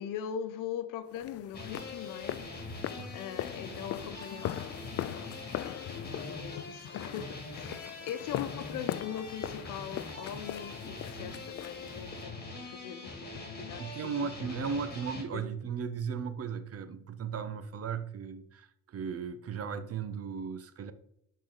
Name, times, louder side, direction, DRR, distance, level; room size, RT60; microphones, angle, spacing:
voice 1, 0.0-2.4 3.1-14.1 14.4-14.5 15.3-15.4, left 9 dB, 80° left, 0.9 m, -41 dB
sound 1, 1.2-12.3, left 12 dB, 50° left, 0.4 m, -41 dB
sound 2, 1.5-15.2, left 3 dB, 30° left, 2.6 m, -43 dB
voice 2, 13.8-20.9, right 6 dB, 50° right, 0.9 m, -36 dB
10.5 x 4.2 x 4.0 m
cardioid pair, 95°, 32 cm